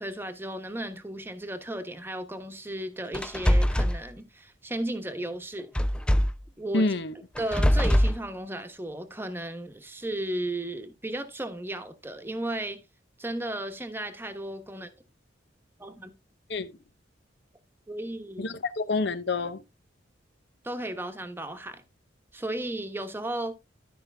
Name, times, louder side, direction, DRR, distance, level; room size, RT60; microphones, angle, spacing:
voice 1, 0.0-5.7 6.6-6.9 7.4-12.8 13.2-14.9 15.8-16.1 17.9-18.5 20.6-21.8 22.3-23.5, right 1 dB, 10° right, 1.1 m, -34 dB
sound 1, 3.1-4.0 5.8-6.4 7.4-8.2, equal, 5° left, 0.4 m, -22 dB
voice 2, 6.7-7.1 16.5-16.8 18.4-19.6, left 3 dB, 65° left, 0.9 m, -28 dB
12.5 x 5.2 x 3.4 m
head